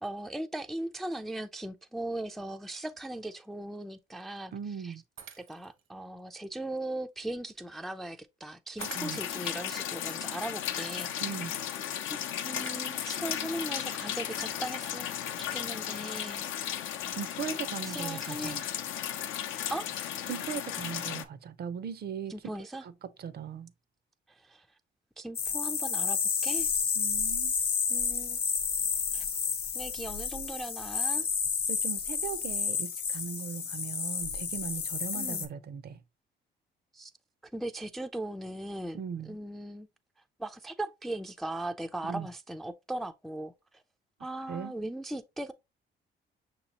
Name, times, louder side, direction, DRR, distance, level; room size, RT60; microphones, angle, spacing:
voice 1, 0.0-4.5 4.8-5.0 5.4-11.3 12.1-16.5 17.8-18.7 19.7-19.9 22.3-22.8 24.3-24.7 25.2-26.7 27.9-28.4 29.1-29.2 29.7-31.3 35.1-35.5 36.9-37.1 37.5-39.9 40.4-43.8 44.2-45.5, right 1 dB, ahead, 0.3 m, -38 dB
voice 2, 4.5-5.0 8.9-9.2 11.2-11.5 17.2-18.6 20.3-22.3 22.8-23.7 27.0-27.5 31.7-36.0 38.9-39.4 42.0-42.3 44.5-44.7, right 7 dB, 55° right, 0.5 m, -38 dB
Shatter, 5.2-5.9 6.4-6.5 8.8-9.5 12.6-13.3, right 7 dB, 75° right, 1.0 m, -46 dB
sound 1, 8.8-21.2, left 10 dB, 85° left, 0.6 m, -35 dB
sound 2, 25.3-35.4, left 6 dB, 55° left, 0.9 m, -31 dB
6.0 x 2.9 x 2.8 m
cardioid pair, 90°, 20 cm